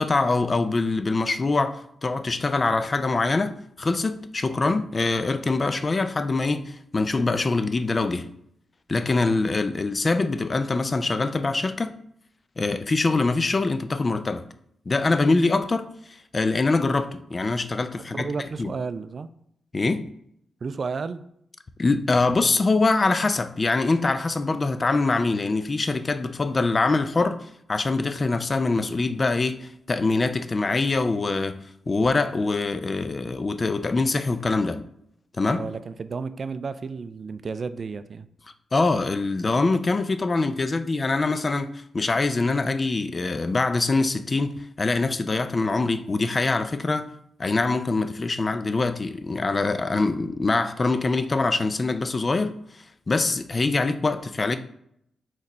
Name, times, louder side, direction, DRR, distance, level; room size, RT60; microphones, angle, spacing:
voice 1, 0.0-8.3 8.9-11.9 12.6-14.4 14.9-18.3 18.6-18.7 19.7-20.0 21.8-31.6 31.9-34.8 35.4-35.7 38.7-47.1 47.4-54.6, left 3 dB, 40° left, 0.4 m, -24 dB
voice 2, 18.1-19.3 20.6-21.3 35.5-38.3, right 4 dB, 55° right, 0.3 m, -32 dB
4.1 x 3.1 x 4.0 m
supercardioid pair, 50°, 0 cm